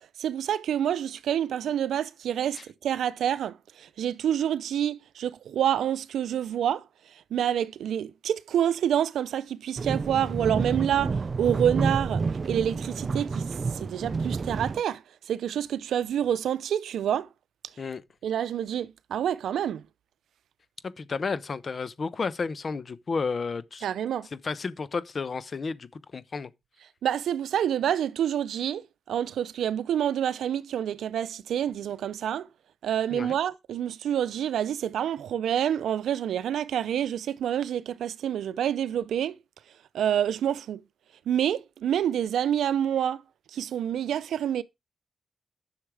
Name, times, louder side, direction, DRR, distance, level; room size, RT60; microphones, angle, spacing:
voice 1, 0.2-6.9 7.3-15.0 15.3-17.3 18.2-19.8 23.8-24.3 27.0-28.8 29.1-32.5 32.8-39.4 39.9-40.8 41.3-43.2 43.5-44.6, right 10 dB, 85° right, 0.6 m, -27 dB
sound 1, 9.8-14.8, right 4 dB, 45° right, 0.5 m, -29 dB
voice 2, 20.8-23.8 24.3-26.5 33.1-33.4, left 4 dB, 50° left, 0.9 m, -32 dB
11.5 x 6.6 x 4.8 m
cardioid pair, 75°, 0 cm